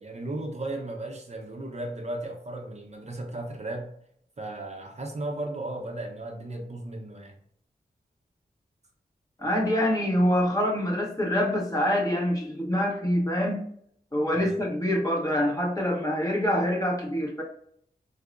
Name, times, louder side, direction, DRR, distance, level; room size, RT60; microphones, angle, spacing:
voice 1, 0.0-3.9 4.4-7.3 14.3-14.6, right 2 dB, 40° right, 2 dB, 0.5 m, -35 dB
voice 2, 9.4-13.6 14.1-17.4, equal, 20° left, -1 dB, 0.8 m, -25 dB
4.4 x 2.0 x 2.4 m, 0.67 s
wide cardioid pair, 85°, 17 cm